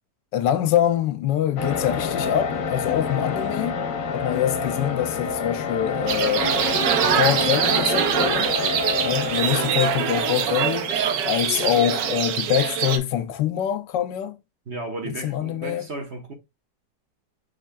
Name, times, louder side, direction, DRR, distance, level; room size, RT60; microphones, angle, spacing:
voice 1, 0.3-3.8 4.1-6.5 7.0-8.5 9.0-10.9 11.2-14.4 15.0-15.9, left 10 dB, 85° left, 1.3 m, -24 dB
sound 1, 1.6-11.6, left 5 dB, 60° left, 1.1 m, -28 dB
sound 2, 6.1-13.0, right 9 dB, 85° right, 1.3 m, -23 dB
voice 2, 14.7-16.3, right 2 dB, 45° right, 1.1 m, -34 dB
6.5 x 3.1 x 2.2 m
omnidirectional pair, 1.9 m